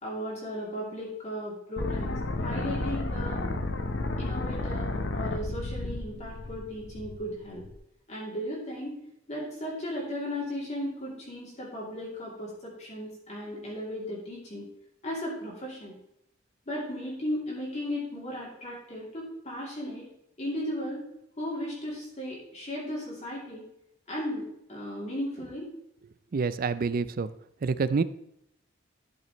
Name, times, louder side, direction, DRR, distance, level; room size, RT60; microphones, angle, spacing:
voice 1, 0.0-3.4 4.2-7.7 8.1-9.0 9.3-14.6 15.0-15.9 16.7-20.1 20.4-21.0 21.4-23.7 24.1-25.7, equal, 35° left, -5 dB, 2.8 m, -36 dB
sound 1, 1.8-7.7, left 2 dB, 60° left, 0.9 m, -32 dB
voice 2, 26.3-27.3 27.6-28.0, right 4 dB, 45° right, 15 dB, 0.4 m, -27 dB
12.0 x 6.6 x 3.1 m, 0.79 s
head